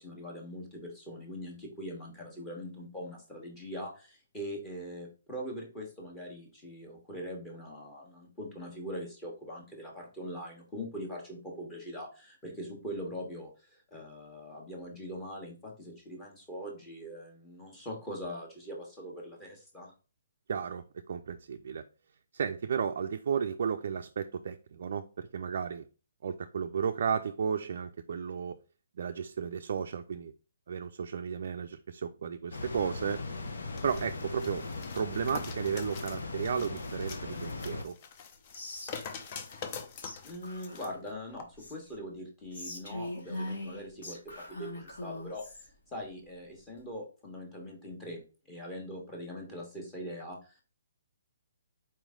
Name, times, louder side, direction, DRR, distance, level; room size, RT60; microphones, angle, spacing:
voice 1, 0.0-19.9 40.2-45.5 45.9-48.2 48.5-50.6, equal, 15° left, 1.4 m, -42 dB
voice 2, 20.5-21.8 22.3-25.8 26.2-28.6 29.0-30.3 30.7-33.3 33.8-34.7 34.9-38.0, right 7 dB, 55° right, 0.4 m, -33 dB
sound 1, 32.5-37.8, left 3 dB, 80° left, 0.9 m, -39 dB
sound 2, 33.8-40.9 41.3-41.4, left 6 dB, 30° left, 0.6 m, -45 dB
Whispering, 38.5-39.8 40.0-40.2 40.4-42.0 42.5-45.7, left 1 dB, 65° left, 2.2 m, -42 dB
4.3 x 3.1 x 3.6 m
hypercardioid pair, 160°, 0 cm